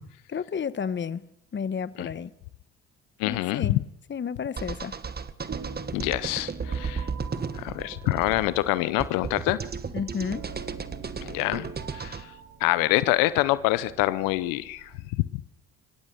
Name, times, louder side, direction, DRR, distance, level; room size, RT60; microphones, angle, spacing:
voice 1, 0.3-1.2 1.5-2.3 3.2-3.8 4.1-5.0 9.9-10.4, left 7 dB, 35° left, 1.2 m, -31 dB
voice 2, 3.2-3.7 5.9-7.1 7.5-9.6 11.2-11.7 11.9-12.2 12.6-14.9, left 17 dB, 90° left, 0.9 m, -26 dB
sound 1, 4.6-12.2, right 5 dB, 30° right, 1.6 m, -34 dB
sound 2, 5.5-15.1, right 5 dB, 45° right, 4.4 m, -45 dB
26.0 x 16.0 x 6.8 m
supercardioid pair, 75°, 32 cm